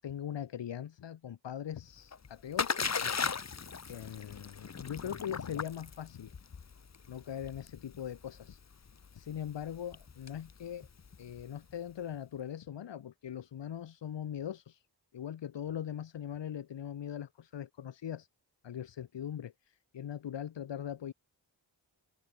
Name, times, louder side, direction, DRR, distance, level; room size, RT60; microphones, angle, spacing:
voice 1, 0.0-3.4 3.9-6.3 7.1-8.6 9.1-10.9 11.2-14.8 15.1-18.3 18.6-21.1, left 9 dB, 90° left, 1.6 m, -41 dB
Splash splatter, 1.9-11.7, left 5 dB, 40° left, 1.4 m, -38 dB
open air
wide cardioid pair, 115°, 42 cm